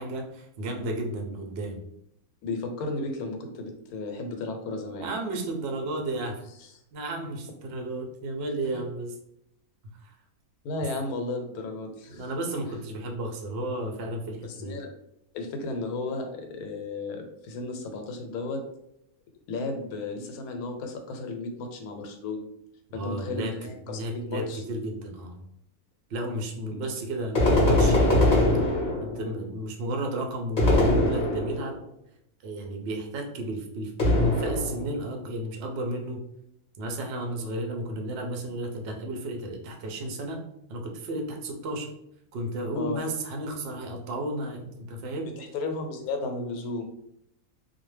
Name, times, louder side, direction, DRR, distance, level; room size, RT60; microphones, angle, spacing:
voice 1, 0.0-1.8 5.0-6.4 6.9-9.1 12.1-14.8 22.9-23.5 23.9-25.4 26.1-28.4 29.0-31.8 32.4-36.2 36.8-40.4 40.7-41.9 42.3-45.3, right 1 dB, 65° right, 2 dB, 0.6 m, -33 dB
voice 2, 2.4-5.1 6.6-6.7 7.3-7.4 8.7-8.8 10.6-12.3 14.4-14.9 15.3-18.6 19.5-22.4 22.9-24.6 26.7-26.8 42.7-43.0 45.4-46.9, left 3 dB, 85° left, 4 dB, 1.1 m, -34 dB
sound 1, 27.3-29.3 30.6-31.8 34.0-35.0, left 1 dB, 45° left, 0.7 m, -22 dB
2.4 x 2.1 x 3.1 m, 0.77 s
omnidirectional pair, 1.5 m